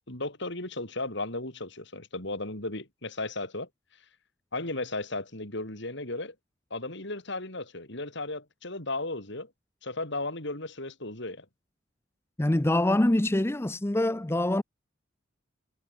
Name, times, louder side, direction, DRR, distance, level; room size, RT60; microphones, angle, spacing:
voice 1, 0.1-3.7 4.5-6.4 6.7-9.5 9.8-11.5, left 2 dB, 60° left, 7.0 m, -35 dB
voice 2, 12.4-14.6, left 1 dB, 15° left, 0.6 m, -24 dB
head